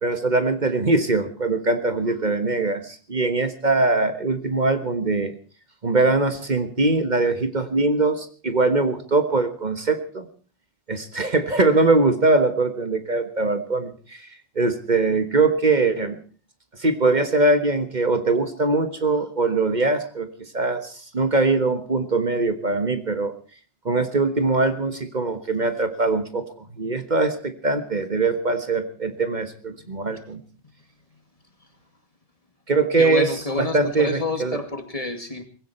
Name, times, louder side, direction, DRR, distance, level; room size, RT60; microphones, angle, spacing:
voice 1, 0.0-5.3 5.8-10.2 10.9-14.3 14.5-16.2 16.8-23.3 23.8-26.5 26.8-30.4 32.7-33.3 33.6-34.6, right 3 dB, 45° right, 9 dB, 1.6 m, -22 dB
voice 2, 33.0-35.4, left 2 dB, 35° left, 7 dB, 2.6 m, -28 dB
19.5 x 16.5 x 4.4 m, 0.39 s
omnidirectional pair, 1.0 m